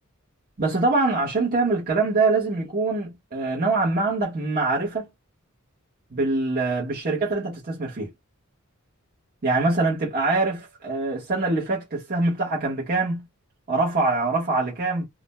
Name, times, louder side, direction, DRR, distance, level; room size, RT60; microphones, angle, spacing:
voice 1, 0.6-5.1 6.1-8.1 9.4-13.2 13.7-15.0, right 3 dB, 45° right, 1.0 m, -24 dB
2.5 x 2.1 x 2.9 m
head